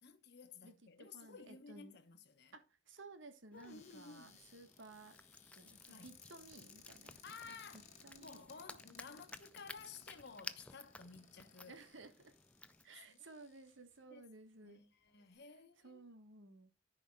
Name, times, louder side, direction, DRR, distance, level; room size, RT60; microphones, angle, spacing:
voice 1, 0.0-2.5 3.5-4.4 5.9-6.2 7.2-7.8 8.2-11.8 13.1-13.4 14.1-14.3 14.6-16.0, left 5 dB, 60° left, 1.1 m, -55 dB
voice 2, 0.6-2.0 2.5-5.1 5.5-7.2 7.4-8.4 11.7-12.3 12.8-14.8 15.8-16.7, right 3 dB, 75° right, 1.3 m, -57 dB
sound 1, 3.5-12.9, left 2 dB, 5° left, 0.4 m, -56 dB
Cupboard open or close, 3.6-14.0 14.7-14.8 15.0-15.4, left 6 dB, 40° left, 1.5 m, -63 dB
14.5 x 5.0 x 2.3 m
head